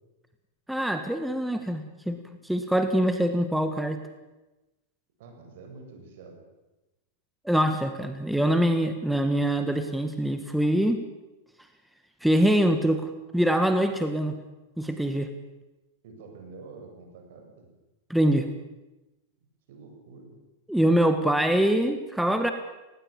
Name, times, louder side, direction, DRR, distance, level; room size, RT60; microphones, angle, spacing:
voice 1, 0.7-4.0 7.4-11.0 12.2-14.4 14.8-15.3 18.1-18.5 20.7-22.5, right 1 dB, ahead, 7 dB, 1.5 m, -24 dB
voice 2, 5.2-6.4 16.0-17.7 19.7-20.4, right 4 dB, 65° right, 4 dB, 7.5 m, -47 dB
19.5 x 18.0 x 8.8 m, 1.0 s
supercardioid pair, 135°, 0 cm